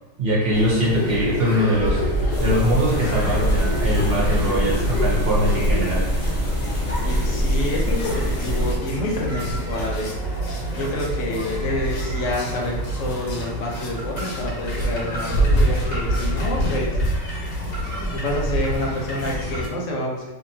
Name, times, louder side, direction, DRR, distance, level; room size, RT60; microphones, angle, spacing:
voice 1, 0.2-2.0 2.4-6.0, right 1 dB, 55° right, -4 dB, 0.7 m, -22 dB
sound 1, 0.5-19.7, equal, 90° left, 1.3 m, -26 dB
sound 2, 2.3-8.7, equal, 25° left, 0.3 m, -24 dB
voice 2, 7.0-10.2 10.7-17.0 18.1-20.3, left 1 dB, 70° left, -2 dB, 1.0 m, -28 dB
2.8 x 2.5 x 2.6 m, 1.1 s
omnidirectional pair, 1.4 m